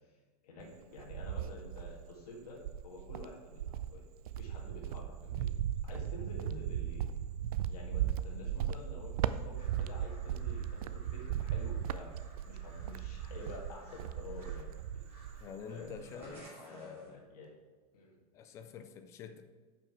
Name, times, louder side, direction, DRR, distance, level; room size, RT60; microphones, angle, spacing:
voice 1, 0.4-4.0 4.4-5.5 5.8-7.0 7.7-12.1 12.4-14.7 14.9-15.4 15.7-17.5 17.9-18.2, left 2 dB, 85° left, -1 dB, 1.8 m, -49 dB
Cricket, 0.6-2.1 2.6-15.5 15.8-16.4, right 10 dB, 75° right, 0.4 m, -37 dB
sound 1, 9.5-17.1, right 1 dB, 10° right, 2.6 m, -59 dB
voice 2, 15.4-17.2 18.3-19.4, left 6 dB, 15° left, 8 dB, 0.3 m, -48 dB
7.0 x 5.9 x 4.5 m, 1.4 s
supercardioid pair, 170°, 19 cm